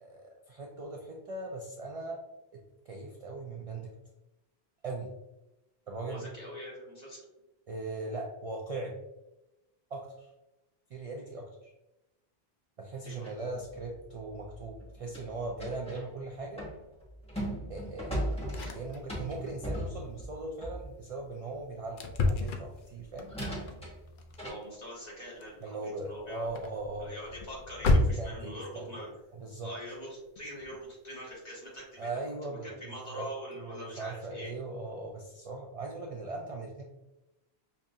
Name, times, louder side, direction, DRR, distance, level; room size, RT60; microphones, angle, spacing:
voice 1, 0.0-2.2 2.5-3.9 4.8-5.1 5.9-6.3 7.7-9.0 9.9-10.3 10.9-11.7 12.8-16.6 17.7-18.4 18.7-23.3 25.6-27.1 27.9-28.9 29.3-29.7 32.0-33.3 33.6-36.8, right 2 dB, 55° right, 1 dB, 0.4 m, -39 dB
voice 2, 6.1-7.2 13.0-13.4 24.4-26.5 27.0-29.1 29.6-32.2 32.5-34.5, equal, 40° left, -5 dB, 1.4 m, -43 dB
sound 1, 13.2-16.1 16.5-21.0 22.6-22.7 23.3-24.5, equal, 5° left, 0.9 m, -38 dB
sound 2, 18.4-19.0 19.3-19.6 19.9-20.1 20.6-20.7 21.4-21.5 22.0-28.6 30.4-30.8 31.3-31.4 31.8-31.9, left 2 dB, 60° left, 0.6 m, -32 dB
5.5 x 2.4 x 2.6 m, 0.97 s
omnidirectional pair, 1.1 m